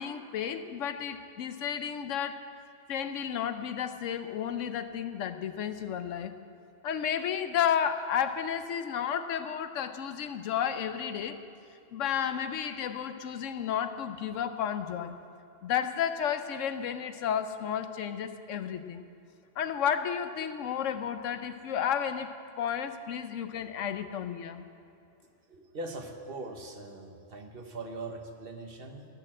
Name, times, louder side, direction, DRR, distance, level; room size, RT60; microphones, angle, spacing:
voice 1, 0.0-2.4 2.9-6.4 6.8-11.4 11.9-15.2 15.6-19.0 19.6-24.7, left 8 dB, 90° left, 10 dB, 1.1 m, -32 dB
voice 2, 25.4-29.1, right 2 dB, 50° right, 4 dB, 1.2 m, -41 dB
18.0 x 6.6 x 7.5 m, 2.5 s
omnidirectional pair, 1.2 m